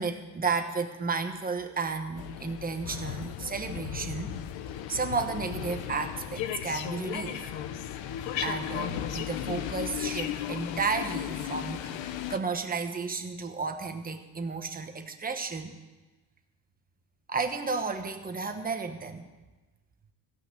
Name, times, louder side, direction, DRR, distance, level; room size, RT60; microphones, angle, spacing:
voice 1, 0.0-4.3 4.9-7.5 8.4-15.8 17.3-19.3, right 4 dB, 20° right, 6 dB, 1.0 m, -33 dB
sound 1, 2.2-12.4, left 10 dB, 75° left, 0.9 m, -35 dB
15.5 x 5.9 x 8.4 m, 1.2 s
cardioid pair, 140°, 45 cm